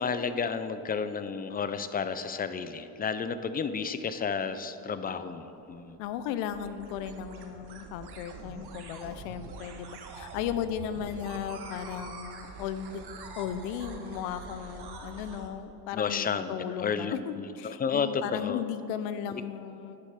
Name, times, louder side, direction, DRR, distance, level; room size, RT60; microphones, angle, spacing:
voice 1, 0.0-6.0 15.9-16.5 16.8-18.6, left 6 dB, 20° left, 12 dB, 0.3 m, -32 dB
sound 1, 5.6-15.5, right 4 dB, 50° right, 1.4 m, -45 dB
voice 2, 6.0-13.0 13.4-20.0, left 9 dB, 90° left, 12 dB, 0.7 m, -36 dB
9.8 x 6.4 x 5.8 m, 2.9 s
supercardioid pair, 90°, 49 cm